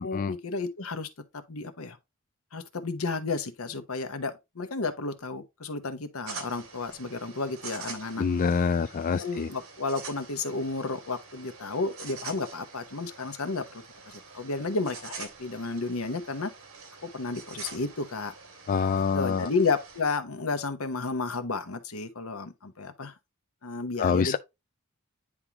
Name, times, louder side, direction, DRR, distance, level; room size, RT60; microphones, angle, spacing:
voice 1, 0.0-2.0 2.5-8.2 9.2-16.5 17.0-18.3 18.9-23.1 23.6-24.4, left 3 dB, 80° left, 1.0 m, -32 dB
sound 1, 6.2-20.0, right 5 dB, 75° right, 2.2 m, -45 dB
voice 2, 8.2-9.5 18.7-19.5 24.0-24.4, left 5 dB, 40° left, 0.3 m, -26 dB
9.7 x 3.7 x 2.9 m
head